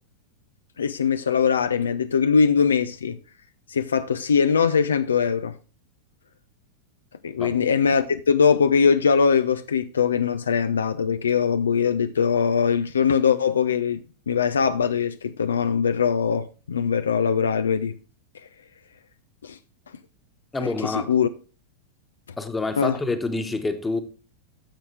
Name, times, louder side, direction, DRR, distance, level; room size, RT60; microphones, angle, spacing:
voice 1, 0.8-3.2 3.7-5.5 7.2-17.9 19.4-19.6 20.6-21.3 22.8-22.9, left 6 dB, 70° left, 0.5 m, -21 dB
voice 2, 20.5-21.2 22.4-24.0, left 3 dB, 10° left, 1.3 m, -27 dB
10.5 x 7.1 x 3.4 m
figure-of-eight pair, 90°, 0 cm